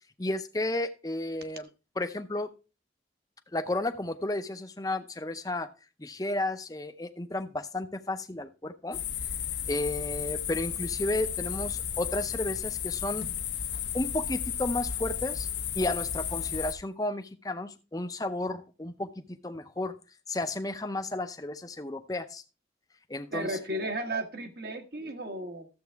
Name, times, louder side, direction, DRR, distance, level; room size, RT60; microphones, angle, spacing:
voice 1, 0.2-1.7 2.0-2.5 3.5-5.7 6.0-9.0 9.7-13.3 13.9-15.5 15.7-19.9 20.3-22.4 23.1-23.6, left 2 dB, 20° left, 9 dB, 0.6 m, -33 dB
sound 1, 8.9-16.7, left 8 dB, 90° left, 1.1 m, -33 dB
voice 2, 23.3-25.7, right 1 dB, 60° right, 6 dB, 1.3 m, -34 dB
13.0 x 7.7 x 3.4 m, 0.31 s
head